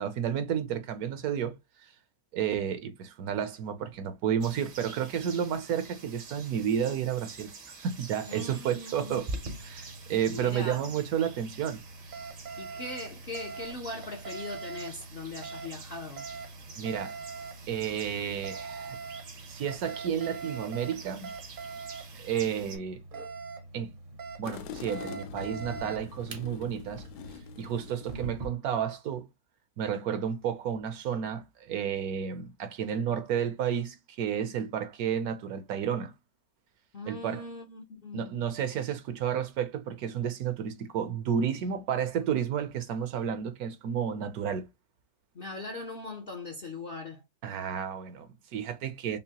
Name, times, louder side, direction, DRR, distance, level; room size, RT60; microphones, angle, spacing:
voice 1, 0.0-1.6 1.8-1.9 2.3-7.5 7.8-9.3 9.6-11.8 16.8-17.2 17.7-19.0 19.5-21.3 22.1-23.0 23.7-23.9 24.4-27.0 27.6-29.3 29.8-36.1 37.1-37.4 38.1-44.7 47.4-49.2, right 8 dB, 70° right, 1.0 m, -31 dB
sound 1, 4.4-22.8, right 5 dB, 85° right, 1.8 m, -49 dB
voice 2, 8.3-9.2 10.3-10.8 12.6-16.3 36.9-38.4 45.3-47.2, left 3 dB, 55° left, 0.6 m, -40 dB
Alarm, 9.1-28.5, right 3 dB, 50° right, 0.6 m, -43 dB
sound 2, 24.4-28.5, left 6 dB, 75° left, 1.1 m, -44 dB
5.4 x 2.0 x 2.8 m
omnidirectional pair, 1.8 m